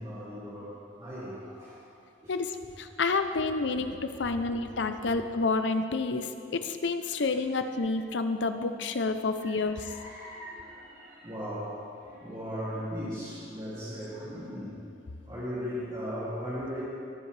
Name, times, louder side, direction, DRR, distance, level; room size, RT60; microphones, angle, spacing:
voice 1, 0.0-1.8 2.2-2.3 3.6-3.8 4.1-4.7 5.0-5.1 7.1-7.2 9.4-14.8 15.3-16.8, equal, 25° right, -12 dB, 2.7 m, -38 dB
voice 2, 2.3-9.8, left 3 dB, 65° left, 9 dB, 0.6 m, -29 dB
21.5 x 7.9 x 3.4 m, 2.5 s
head